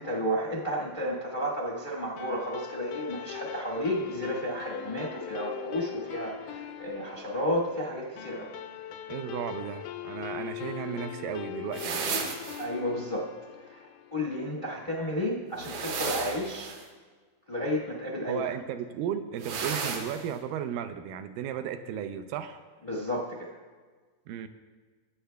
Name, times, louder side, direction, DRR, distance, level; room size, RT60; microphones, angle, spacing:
voice 1, 0.0-8.5 12.6-13.3 13.7-13.8 14.1-16.7 17.5-18.5 22.8-23.5, equal, 60° left, -5 dB, 0.5 m, -32 dB
sound 1, 2.2-14.9, left 10 dB, 80° left, 1.8 m, -41 dB
voice 2, 9.1-12.3 18.3-22.6 24.3-24.5, right 9 dB, 85° right, 9 dB, 2.2 m, -35 dB
sound 2, 11.7-12.6 15.6-16.8 19.4-20.3, right 4 dB, 65° right, 1.5 m, -33 dB
20.0 x 9.1 x 2.3 m, 1.5 s
omnidirectional pair, 3.8 m